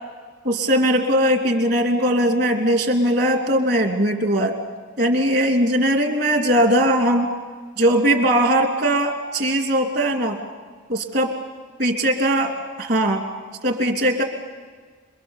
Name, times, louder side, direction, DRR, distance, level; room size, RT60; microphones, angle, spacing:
voice 1, 0.4-4.5 5.0-7.3 7.8-10.4 10.9-11.4 11.8-13.3 13.6-14.2, right 1 dB, 55° right, 4 dB, 2.7 m, -20 dB
26.5 x 23.0 x 7.2 m, 1.5 s
head